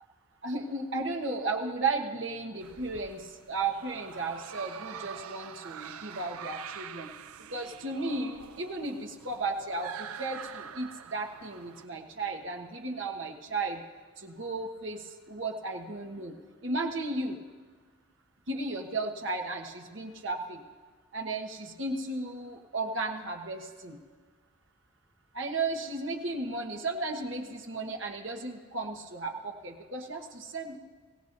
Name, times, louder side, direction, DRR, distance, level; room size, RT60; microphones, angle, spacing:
voice 1, 0.4-7.1 7.5-13.8 14.2-16.3 16.6-17.4 18.5-20.6 21.1-24.0 25.3-30.8, right 3 dB, 60° right, 2 dB, 1.4 m, -34 dB
sound 1, 2.6-11.9, right 8 dB, 85° right, 0.5 m, -45 dB
22.5 x 16.5 x 2.7 m, 1.5 s
head